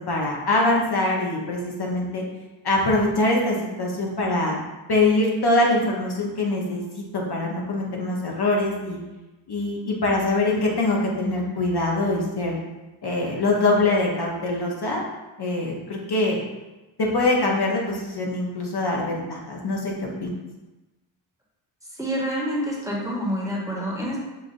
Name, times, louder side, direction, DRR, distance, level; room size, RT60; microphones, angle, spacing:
voice 1, 0.1-2.2 2.6-4.6 4.9-6.8 7.1-9.0 9.5-12.6 13.0-15.0 15.4-16.4 17.0-20.3, left 2 dB, 55° left, -2 dB, 0.8 m, -23 dB
voice 2, 22.0-24.2, equal, 5° right, -4 dB, 1.1 m, -27 dB
5.6 x 2.4 x 2.5 m, 1.1 s
cardioid pair, 55°, 48 cm